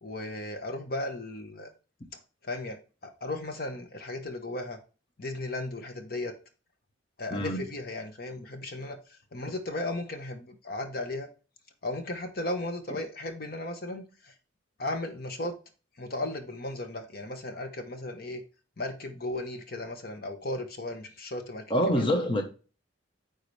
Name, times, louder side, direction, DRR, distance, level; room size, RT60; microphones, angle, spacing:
voice 1, 0.0-1.7 2.4-2.8 3.0-4.8 5.2-6.3 7.2-11.3 11.8-14.3 14.8-15.5 16.0-18.4 18.8-21.6, left 2 dB, 50° left, 1.0 m, -35 dB
voice 2, 7.3-7.6 21.7-22.4, equal, 25° left, 1.0 m, -25 dB
9.4 x 4.0 x 3.2 m
head